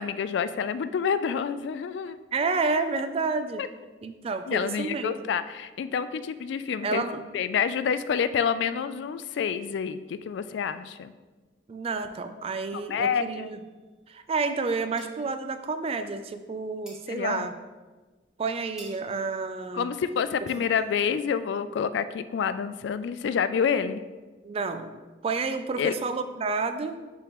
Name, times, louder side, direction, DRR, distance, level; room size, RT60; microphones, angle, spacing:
voice 1, 0.0-2.2 3.6-3.7 4.5-7.0 7.3-11.1 12.7-13.5 17.1-17.5 19.7-24.0 25.8-25.9, left 7 dB, 70° left, 13 dB, 0.3 m, -28 dB
voice 2, 2.3-3.6 4.0-5.3 6.8-7.2 11.7-13.6 14.1-17.5 18.4-19.9 24.4-24.9 25.2-27.0, right 4 dB, 30° right, 9 dB, 0.3 m, -30 dB
sound 1, 13.3-14.4 14.6-15.8 16.1-21.3, right 1 dB, 5° right, 1.3 m, -55 dB
10.5 x 3.5 x 3.0 m, 1.3 s
head